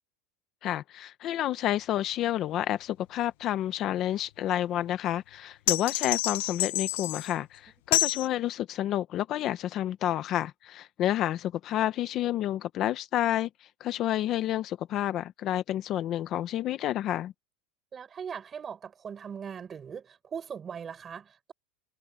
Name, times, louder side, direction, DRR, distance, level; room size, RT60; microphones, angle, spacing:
voice 1, 0.6-17.3, left 12 dB, 30° left, 0.6 m, -30 dB
sound 1, 5.7-7.3 7.9-8.3, left 18 dB, 70° left, 0.7 m, -28 dB
voice 2, 17.9-21.5, right 7 dB, 20° right, 6.2 m, -40 dB
supercardioid pair, 170°, 0 cm